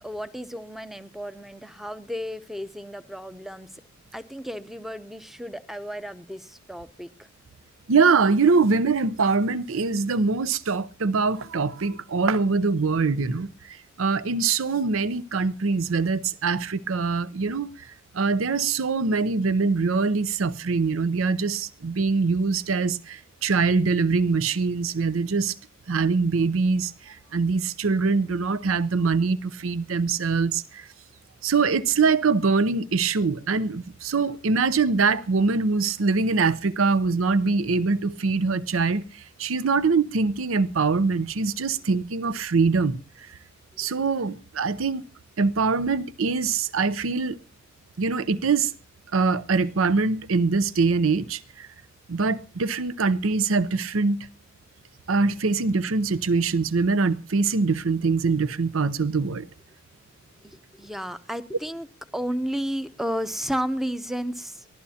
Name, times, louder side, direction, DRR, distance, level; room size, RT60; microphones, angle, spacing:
voice 1, 0.0-3.8 4.1-7.3 60.4-61.9 62.1-64.7, equal, ahead, 0.6 m, -33 dB
voice 2, 7.9-17.9 18.1-25.5 25.9-30.9 31.4-43.3 43.8-45.0 45.4-47.4 48.0-48.7 49.1-51.7 52.1-54.2 55.1-59.5, right 4 dB, 85° right, 0.6 m, -23 dB
23.0 x 15.0 x 2.8 m
head